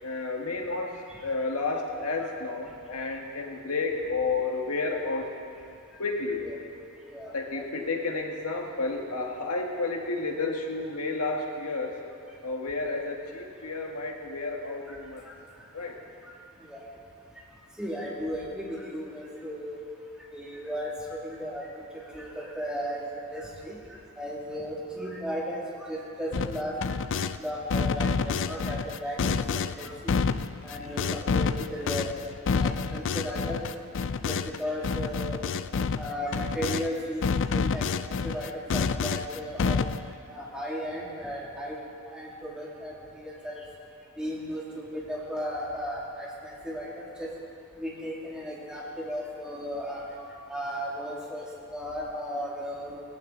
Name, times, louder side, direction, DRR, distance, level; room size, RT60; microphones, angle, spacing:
voice 1, 0.0-5.3 6.0-6.4 7.3-12.0 12.4-15.3 15.7-16.0, left 3 dB, 80° left, 1 dB, 1.8 m, -31 dB
voice 2, 7.0-7.9 15.2-15.3 16.6-16.8 17.8-19.8 20.3-21.7 22.1-23.8 24.2-26.9 27.4-29.2 29.5-30.2 30.6-32.1 32.5-33.7 34.3-35.4 35.9-37.2 37.5-39.8 40.3-41.8 42.1-43.6 44.2-47.3 47.8-50.0 50.4-53.0, equal, 5° right, -5 dB, 2.6 m, -35 dB
sound 1, 26.3-27.4 27.7-36.9 37.2-40.1, left 5 dB, 55° left, 0.4 m, -28 dB
19.0 x 16.0 x 4.0 m, 2.4 s
head